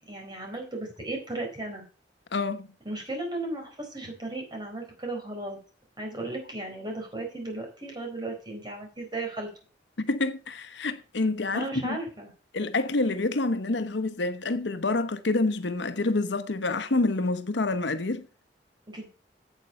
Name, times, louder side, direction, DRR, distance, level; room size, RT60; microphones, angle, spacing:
voice 1, 0.1-1.8 2.8-5.6 6.0-9.5 11.5-12.3 18.9-19.1, right 2 dB, 25° right, 4.2 m, -35 dB
voice 2, 2.3-2.7 10.0-12.0 12.5-18.3, left 2 dB, 75° left, 0.9 m, -27 dB
9.2 x 8.1 x 5.3 m
head